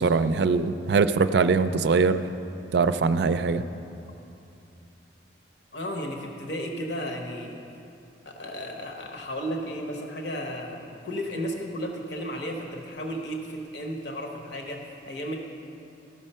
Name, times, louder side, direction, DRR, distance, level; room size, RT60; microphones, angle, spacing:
voice 1, 0.0-2.3 2.7-3.6, right 4 dB, 65° right, 12 dB, 0.4 m, -22 dB
voice 2, 5.7-7.6 8.2-15.4, equal, 65° left, 1 dB, 1.1 m, -34 dB
14.0 x 6.3 x 5.5 m, 2.7 s
head